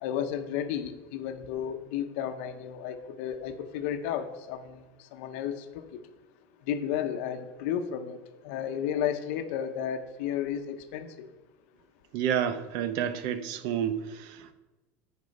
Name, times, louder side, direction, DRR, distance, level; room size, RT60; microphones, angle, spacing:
voice 1, 0.0-4.6 5.1-5.5 6.7-8.2 8.4-11.3, left 9 dB, 65° left, 8 dB, 0.9 m, -32 dB
voice 2, 12.1-14.5, right 9 dB, 55° right, 12 dB, 0.6 m, -30 dB
9.6 x 5.3 x 5.3 m, 1.2 s
cardioid pair, 160°, 7 cm